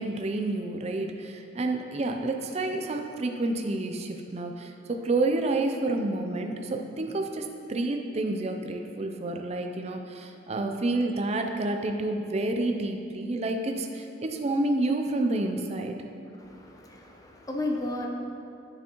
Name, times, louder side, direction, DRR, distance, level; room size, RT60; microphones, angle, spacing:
voice 1, 0.0-16.0, right 2 dB, 30° right, 4 dB, 0.4 m, -29 dB
voice 2, 16.4-18.1, left 2 dB, 15° left, 1 dB, 0.6 m, -33 dB
10.0 x 6.9 x 3.0 m, 2.6 s
head